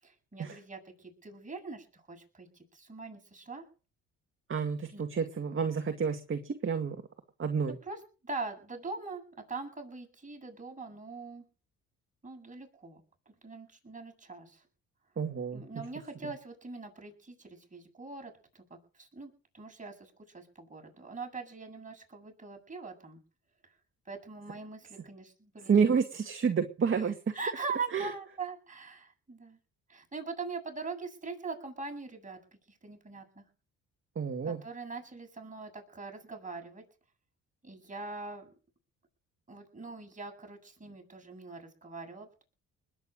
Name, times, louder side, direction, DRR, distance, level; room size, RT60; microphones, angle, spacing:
voice 1, 0.0-2.5 2.7-3.6 4.9-5.0 7.9-8.0 8.2-11.4 12.2-14.6 15.5-23.2 24.1-26.0 27.3-29.6 29.9-32.4 32.7-33.4 34.4-36.8 37.6-38.5 39.5-42.4, right 4 dB, 25° right, 2 dB, 8.0 m, -42 dB
voice 2, 4.5-7.0 7.4-7.8 15.2-15.9 25.7-27.4 27.9-28.1 34.2-34.6, right 6 dB, 40° right, 6 dB, 2.1 m, -29 dB
20.5 x 9.3 x 6.4 m, 0.37 s
cardioid pair, 85°, 31 cm